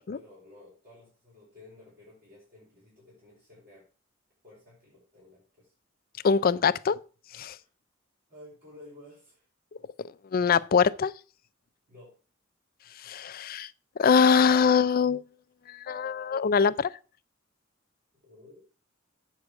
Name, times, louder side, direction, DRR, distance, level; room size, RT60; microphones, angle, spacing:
voice 1, 0.1-3.9 4.4-5.7 7.5-7.7 8.3-9.5 11.9-12.1 18.2-18.5, left 2 dB, 50° right, 4.9 m, -53 dB
voice 2, 6.2-7.0 7.3-7.6 10.3-11.1 13.0-13.7 14.0-15.2 15.7-16.9, left 6 dB, 50° left, 0.4 m, -23 dB
8.3 x 6.6 x 4.7 m
head